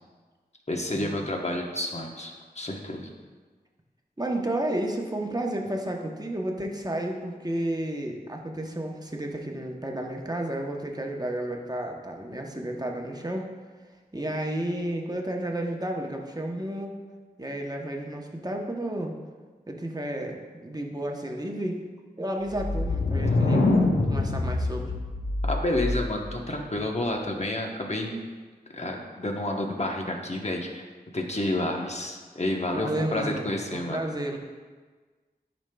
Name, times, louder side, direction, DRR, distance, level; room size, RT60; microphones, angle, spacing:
voice 1, 0.7-3.1 25.4-28.2 28.7-30.9 31.1-34.0, left 1 dB, 40° left, 1 dB, 0.9 m, -30 dB
voice 2, 4.2-13.5 14.1-16.9 17.4-19.1 19.7-21.8 22.2-23.7 24.1-24.9 32.7-33.4 33.7-34.4, right 1 dB, 25° right, 1 dB, 0.9 m, -31 dB
sound 1, 22.5-26.3, left 2 dB, 85° left, 0.7 m, -25 dB
10.5 x 5.2 x 2.3 m, 1.4 s
wide cardioid pair, 50°, 17 cm